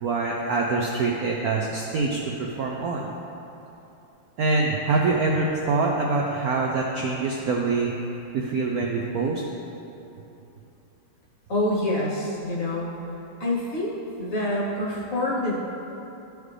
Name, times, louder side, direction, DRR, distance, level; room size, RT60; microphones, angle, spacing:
voice 1, 0.0-3.1 4.4-7.9 8.3-9.4, right 3 dB, 85° right, -1 dB, 0.8 m, -25 dB
voice 2, 11.5-12.9 13.4-13.9 14.2-15.6, left 1 dB, 50° left, -5 dB, 1.3 m, -26 dB
12.0 x 5.0 x 3.3 m, 2.9 s
omnidirectional pair, 2.3 m